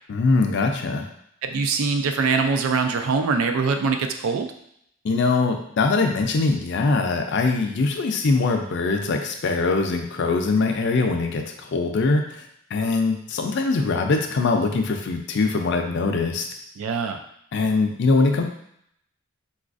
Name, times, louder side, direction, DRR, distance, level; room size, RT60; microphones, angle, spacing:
voice 1, 0.1-1.1 5.0-12.4 12.7-16.5 17.5-18.5, left 3 dB, 55° left, 4 dB, 0.4 m, -22 dB
voice 2, 1.4-4.5 16.8-17.2, right 4 dB, 85° right, 6 dB, 0.4 m, -23 dB
3.9 x 2.4 x 2.5 m, 0.71 s
head